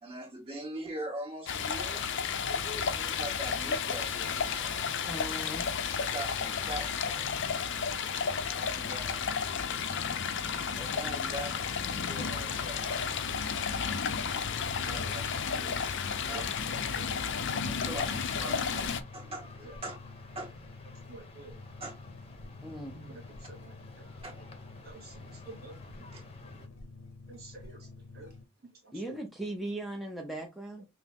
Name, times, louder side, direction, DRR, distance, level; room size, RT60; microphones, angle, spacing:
voice 1, 0.0-2.2 2.5-4.7 6.0-7.3 8.4-9.3 10.7-13.1 14.8-15.2 15.5-15.8 16.3-16.4 17.6-20.0 20.3-20.5 21.8-22.0 24.2-24.3 26.1-26.3, right 1 dB, 25° right, 1.5 m, -42 dB
Stream, 1.5-19.0, left 6 dB, 60° left, 0.5 m, -32 dB
voice 2, 5.0-5.9 22.6-23.0 28.9-30.9, right 1 dB, ahead, 0.5 m, -38 dB
sound 1, 9.7-26.7, left 2 dB, 30° left, 0.8 m, -53 dB
voice 3, 16.1-16.5 16.9-17.2 19.6-19.7 21.1-21.6 22.9-24.1 24.8-26.1 26.5-26.6 27.3-28.3 28.6-29.0, right 2 dB, 50° right, 1.7 m, -50 dB
sound 2, 17.6-28.4, left 3 dB, 85° left, 0.8 m, -49 dB
5.6 x 2.0 x 3.5 m
head